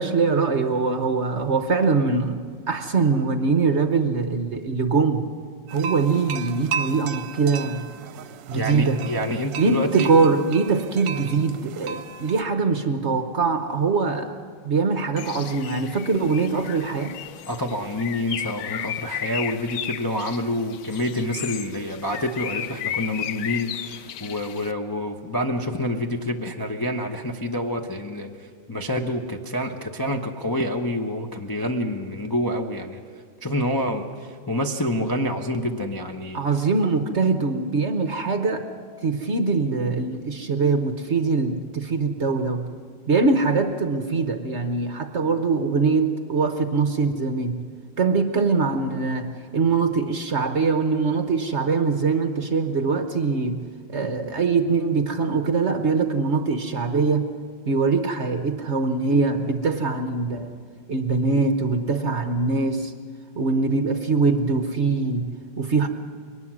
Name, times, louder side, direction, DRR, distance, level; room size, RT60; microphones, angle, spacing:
voice 1, 0.0-5.3 5.7-7.9 8.5-9.1 9.6-14.3 14.6-17.2 36.3-38.7 39.0-42.7 43.1-47.6 48.0-57.3 57.7-60.5 60.9-62.9 63.4-65.9, right 4 dB, 50° right, 7 dB, 0.9 m, -23 dB
sound 1, 5.7-12.4, right 6 dB, 70° right, 1.3 m, -35 dB
voice 2, 8.5-10.1 17.5-28.3 28.7-33.0 33.4-34.0 34.5-36.4, left 1 dB, 30° left, 2 dB, 0.3 m, -27 dB
Bird, 15.2-24.7, left 10 dB, 65° left, 0.9 m, -34 dB
22.5 x 19.5 x 6.2 m, 2.1 s
omnidirectional pair, 2.1 m